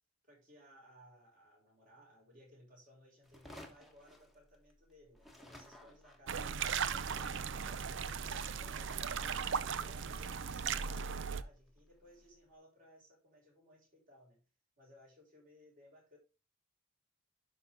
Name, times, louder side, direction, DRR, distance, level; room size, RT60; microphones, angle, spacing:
voice 1, 0.2-7.1 7.4-8.9 9.2-14.4 14.8-16.2, equal, 40° right, -3 dB, 5.9 m, -62 dB
sound 1, 3.2-4.9 5.1-12.4, left 1 dB, ahead, 1.3 m, -58 dB
sound 2, 6.3-11.4, right 6 dB, 60° right, 0.5 m, -37 dB
11.0 x 5.7 x 3.7 m, 0.30 s
head